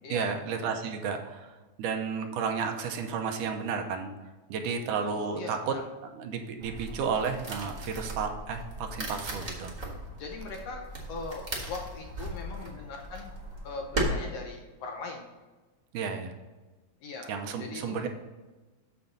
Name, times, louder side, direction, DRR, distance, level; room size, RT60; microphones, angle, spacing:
voice 1, 0.1-1.5 1.8-4.1 4.5-5.8 6.1-9.7 15.9-16.3 17.3-18.1, right 6 dB, 85° right, 5 dB, 2.3 m, -32 dB
voice 2, 5.1-5.8 9.8-10.8 11.1-13.3 13.6-15.3 17.0-17.3 17.6-18.0, left 3 dB, 70° left, 2 dB, 1.6 m, -40 dB
sound 1, 6.6-14.0, right 1 dB, 40° right, 0.6 m, -38 dB
7.2 x 6.9 x 3.9 m, 1.2 s
omnidirectional pair, 3.7 m